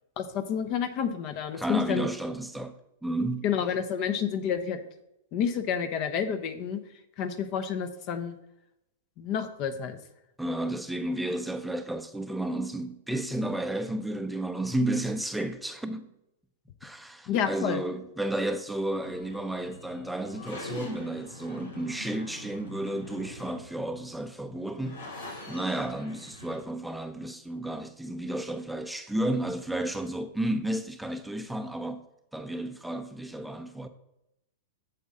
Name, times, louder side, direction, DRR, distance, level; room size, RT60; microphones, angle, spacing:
voice 1, 0.2-2.1 3.4-4.8 5.3-6.8 7.2-8.3 9.2-10.0 17.3-17.8, left 7 dB, 45° left, 0.9 m, -29 dB
voice 2, 1.5-2.7 3.0-3.5 10.4-16.1 16.8-32.1 32.3-33.9, right 1 dB, ahead, 0.6 m, -32 dB
sound 1, 18.8-26.6, left 1 dB, 90° left, 3.5 m, -45 dB
8.1 x 7.3 x 3.8 m
hypercardioid pair, 130°, 0 cm